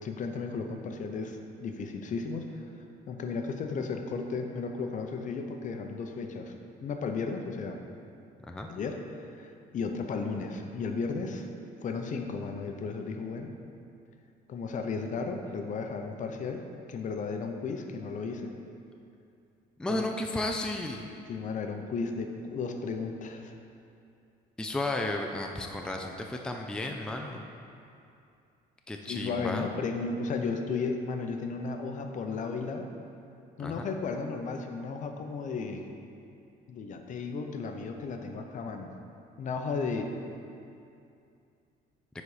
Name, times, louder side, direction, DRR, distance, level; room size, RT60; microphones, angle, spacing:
voice 1, 0.0-2.6 3.1-6.5 6.8-7.8 8.7-11.5 11.8-13.5 14.5-16.6 16.9-18.5 19.9-20.1 21.3-23.5 29.1-32.9 33.6-35.8 36.7-38.9 39.4-40.1, left 4 dB, 50° left, 4 dB, 0.7 m, -34 dB
voice 2, 19.8-21.0 24.6-27.5 28.9-29.7 33.6-33.9, left 2 dB, 5° left, 2 dB, 0.5 m, -33 dB
9.9 x 4.2 x 4.9 m, 2.6 s
cardioid pair, 110°, 17 cm